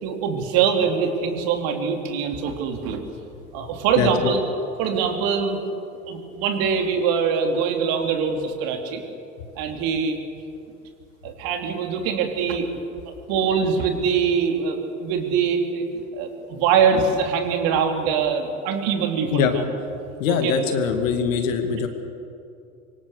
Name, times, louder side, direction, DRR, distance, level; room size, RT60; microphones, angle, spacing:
voice 1, 0.0-3.0 3.5-4.4 4.8-5.7 6.1-9.0 9.6-10.2 11.2-12.8 13.0-15.8 16.1-19.6 20.4-20.5, right 6 dB, 55° right, 4 dB, 3.3 m, -23 dB
voice 2, 20.2-21.9, left 6 dB, 65° left, 6 dB, 2.5 m, -22 dB
25.5 x 24.0 x 6.7 m, 2.6 s
figure-of-eight pair, 70°, 42 cm